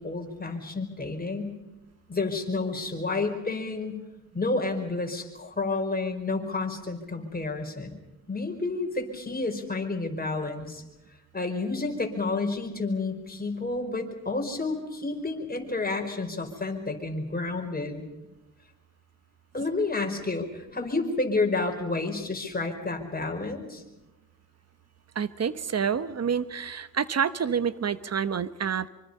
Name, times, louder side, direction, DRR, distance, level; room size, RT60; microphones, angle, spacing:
voice 1, 0.0-1.5 2.1-4.0 4.3-8.0 8.3-10.8 11.3-18.0 19.5-23.8, left 3 dB, 25° left, 3 dB, 5.0 m, -30 dB
voice 2, 25.1-28.9, right 7 dB, 45° right, 14 dB, 1.2 m, -28 dB
25.5 x 25.0 x 5.6 m, 1.0 s
cardioid pair, 70°, 35 cm